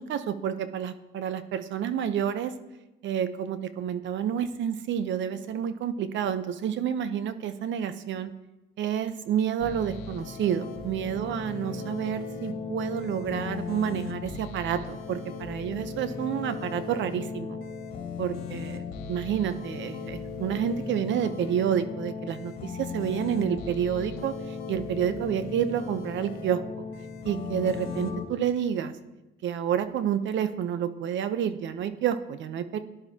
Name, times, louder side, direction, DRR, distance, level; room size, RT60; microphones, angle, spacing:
voice 1, 0.0-2.5 3.0-8.3 8.8-17.6 18.2-18.8 19.1-26.6 27.2-28.9 29.4-32.8, right 9 dB, 60° right, 11 dB, 0.9 m, -29 dB
sound 1, 9.6-28.2, left 5 dB, 80° left, 2.0 m, -37 dB
18.0 x 11.5 x 2.9 m, 1.0 s
cardioid pair, 90°, 21 cm